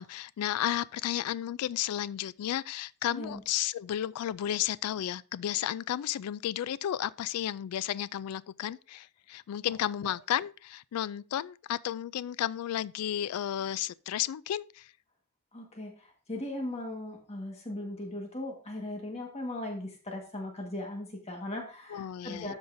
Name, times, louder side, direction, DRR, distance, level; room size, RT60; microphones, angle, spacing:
voice 1, 0.0-14.9 21.9-22.5, left 11 dB, 80° left, 0.3 m, -33 dB
voice 2, 3.1-3.4 9.7-9.8 15.5-22.5, left 1 dB, 30° left, 1.5 m, -38 dB
12.5 x 5.4 x 2.6 m
head